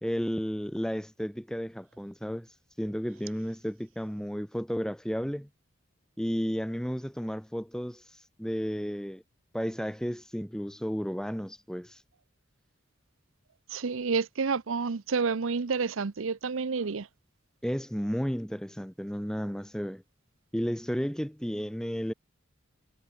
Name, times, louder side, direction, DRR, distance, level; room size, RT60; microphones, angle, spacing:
voice 1, 0.0-5.5 6.2-9.2 9.5-12.0 17.6-20.0 20.5-22.1, equal, 5° left, 1.9 m, -33 dB
voice 2, 13.7-17.1, right 5 dB, 80° right, 0.7 m, -29 dB
head